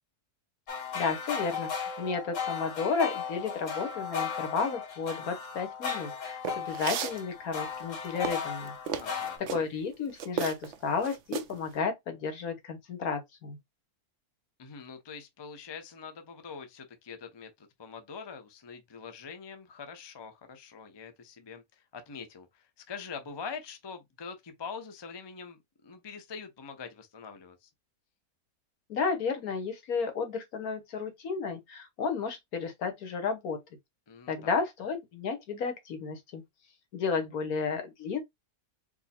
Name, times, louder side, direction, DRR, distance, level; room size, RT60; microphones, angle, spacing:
sound 1, 0.7-9.4, left 6 dB, 60° left, 1.4 m, -36 dB
voice 1, 0.9-8.7 9.5-13.6 28.9-33.6 34.3-36.4 36.9-38.2, left 5 dB, 75° left, 1.6 m, -32 dB
sound 2, 6.4-7.2 7.8-9.6 10.2-10.7 11.0-11.6, right 7 dB, 60° right, 0.8 m, -34 dB
voice 2, 9.0-9.4 14.6-25.6 25.8-27.7 34.1-34.6, left 5 dB, 25° left, 0.5 m, -44 dB
4.6 x 2.1 x 4.2 m
omnidirectional pair, 1.6 m